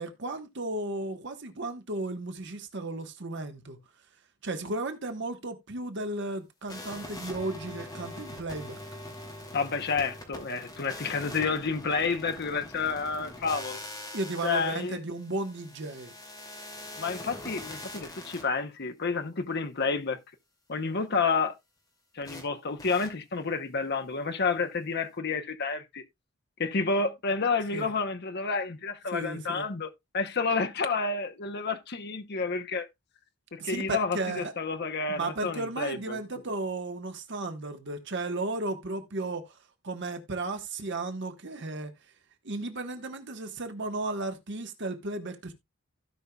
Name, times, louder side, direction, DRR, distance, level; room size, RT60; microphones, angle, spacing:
voice 1, 0.0-3.8 4.4-8.8 14.1-16.1 27.7-27.9 29.1-29.6 33.6-34.5 35.1-39.6 39.8-41.9 42.4-45.5, right 2 dB, 60° right, 1.3 m, -34 dB
sound 1, 6.7-18.4 22.2-22.4 22.8-23.1, left 1 dB, 15° left, 2.6 m, -43 dB
voice 2, 9.5-13.8 14.4-15.0 17.0-20.2 20.7-21.5 22.1-26.0 26.6-29.9 30.1-32.9 33.5-36.2, left 4 dB, 50° left, 0.9 m, -30 dB
16.0 x 5.5 x 2.3 m
head